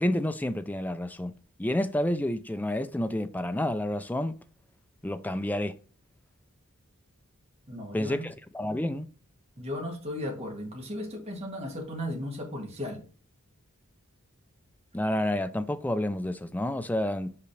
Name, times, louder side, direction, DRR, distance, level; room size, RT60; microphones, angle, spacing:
voice 1, 0.0-1.3 1.6-4.3 5.0-5.8 7.9-9.1 14.9-17.4, left 1 dB, 10° left, 0.4 m, -29 dB
voice 2, 7.7-8.3 9.6-13.1, left 1 dB, 30° right, 1.8 m, -36 dB
5.7 x 5.1 x 3.3 m
head